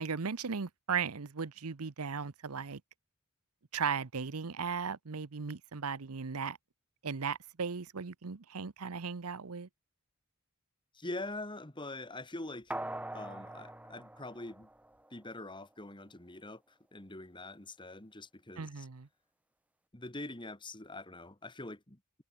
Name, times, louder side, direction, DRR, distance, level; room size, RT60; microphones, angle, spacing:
voice 1, 0.0-2.8 3.7-6.6 7.0-9.7 18.6-19.1, right 6 dB, 85° right, 0.8 m, -37 dB
voice 2, 10.9-12.7 13.1-14.7 15.1-16.6 16.9-18.9 19.9-22.0, left 2 dB, 20° left, 2.2 m, -44 dB
sound 1, 12.7-15.3 15.6-15.7, right 1 dB, 5° right, 1.2 m, -43 dB
head